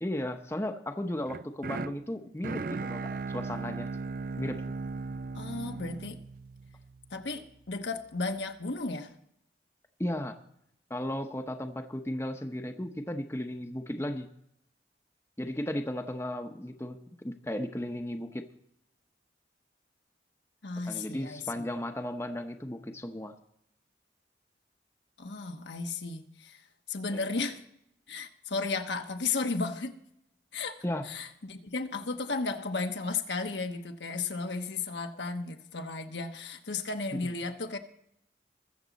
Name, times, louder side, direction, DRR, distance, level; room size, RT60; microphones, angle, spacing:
voice 1, 0.0-3.0 3.3-3.9 4.4-4.6 10.0-10.4 10.9-14.3 15.4-18.4 20.9-23.3 27.1-27.3 30.8-31.0 37.1-37.3, left 1 dB, 15° left, 6 dB, 0.8 m, -35 dB
sound 1, 1.2-7.4, right 4 dB, 50° right, 0.4 m, -37 dB
voice 2, 5.3-6.2 7.1-9.1 20.6-21.6 25.2-26.6 26.9-27.6 28.1-30.0 30.5-37.8, left 3 dB, 85° left, 6 dB, 1.1 m, -34 dB
21.5 x 7.4 x 4.1 m, 0.77 s
head